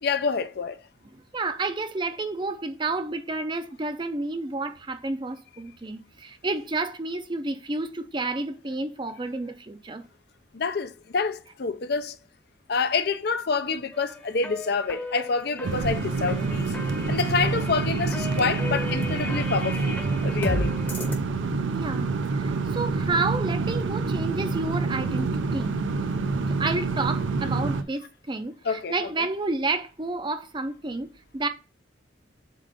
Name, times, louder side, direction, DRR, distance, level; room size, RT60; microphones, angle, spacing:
voice 1, 0.0-0.8 10.5-12.2 12.7-16.7 17.1-20.8 28.6-29.3, left 4 dB, 55° left, 0.5 m, -27 dB
voice 2, 1.3-10.0 21.7-22.1 22.3-25.8 26.5-31.5, right 3 dB, 25° right, 0.5 m, -30 dB
sound 1, 13.9-21.2, left 1 dB, 10° left, 0.8 m, -35 dB
sound 2, 15.6-27.8, right 4 dB, 80° right, 0.6 m, -27 dB
7.4 x 2.5 x 5.2 m
head